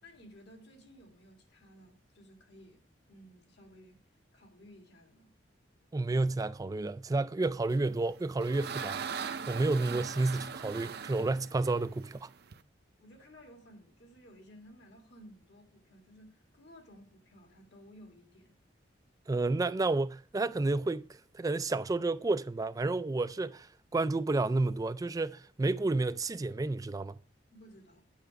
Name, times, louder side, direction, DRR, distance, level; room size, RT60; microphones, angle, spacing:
voice 1, 0.0-4.0 4.3-5.3 13.0-18.6 27.5-28.0, equal, 65° left, 2.3 m, -56 dB
voice 2, 5.9-9.0 9.5-12.3 19.3-21.1 21.3-23.7 23.9-27.2, right 2 dB, 20° right, 0.3 m, -30 dB
sound 1, 7.9-12.6, right 6 dB, 60° right, 0.6 m, -40 dB
9.0 x 6.0 x 4.7 m
head